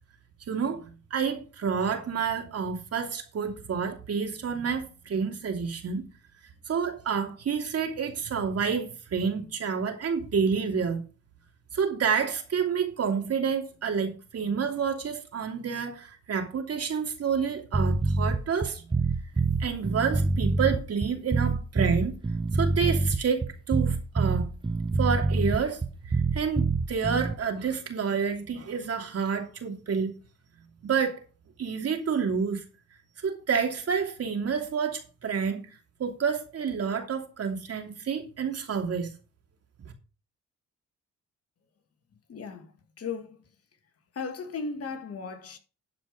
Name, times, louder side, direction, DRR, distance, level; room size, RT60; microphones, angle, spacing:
voice 1, 0.5-6.1 6.7-11.0 11.7-18.9 19.6-22.2 22.5-24.5 25.0-30.1 30.8-31.2 31.6-32.6 33.2-35.6 36.0-39.1, right 6 dB, 55° right, 2.8 m, -29 dB
sound 1, 17.7-27.3, right 3 dB, 15° right, 0.9 m, -26 dB
voice 2, 42.3-43.4 44.1-45.6, left 5 dB, 50° left, 2.1 m, -36 dB
12.0 x 5.2 x 5.2 m
cardioid pair, 90°, 30 cm